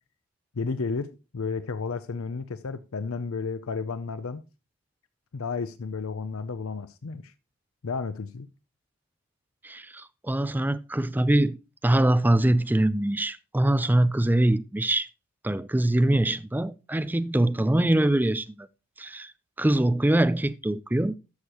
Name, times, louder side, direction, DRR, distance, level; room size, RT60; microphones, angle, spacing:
voice 1, 0.5-4.4 5.3-7.3 7.8-8.5, left 4 dB, 75° left, 0.6 m, -32 dB
voice 2, 9.6-11.6 11.8-15.1 15.4-18.7 19.0-19.3 19.6-21.1, right 1 dB, 10° right, 0.3 m, -23 dB
13.0 x 6.5 x 2.9 m
head